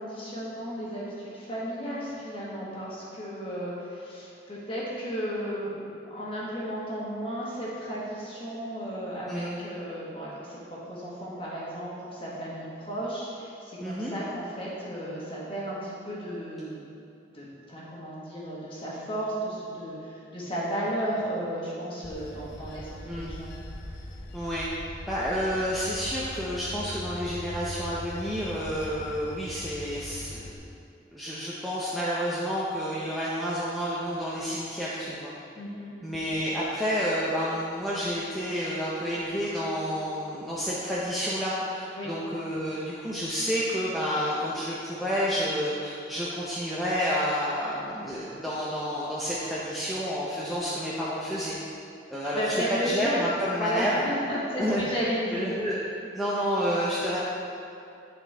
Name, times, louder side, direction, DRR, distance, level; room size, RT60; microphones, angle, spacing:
voice 1, 0.0-5.7 6.1-10.6 10.9-16.8 17.3-22.9 23.2-23.5 35.5-35.9 41.9-42.1 52.3-53.3 53.6-55.5, equal, 30° left, -6 dB, 1.4 m, -33 dB
voice 2, 9.3-9.6 13.8-14.1 23.1-23.3 24.3-24.7 25.1-30.5 31.1-35.3 36.0-51.5 52.1-54.1 54.6-54.8 55.3-55.8 56.1-57.2, equal, ahead, -8 dB, 0.6 m, -30 dB
Bell / Train, 22.0-30.6, left 1 dB, 65° left, 0.7 m, -41 dB
10.0 x 4.3 x 3.3 m, 2.6 s
head